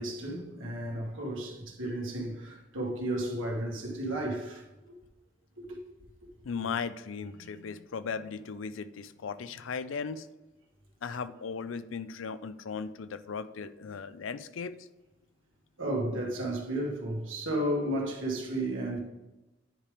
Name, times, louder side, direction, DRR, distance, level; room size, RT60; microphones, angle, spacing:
voice 1, 0.0-4.9 5.6-6.1 15.8-19.0, right 1 dB, 80° right, 1.8 m, -33 dB
voice 2, 6.4-10.3 11.0-14.9, left 5 dB, 75° left, 0.4 m, -37 dB
10.0 x 3.5 x 5.0 m
head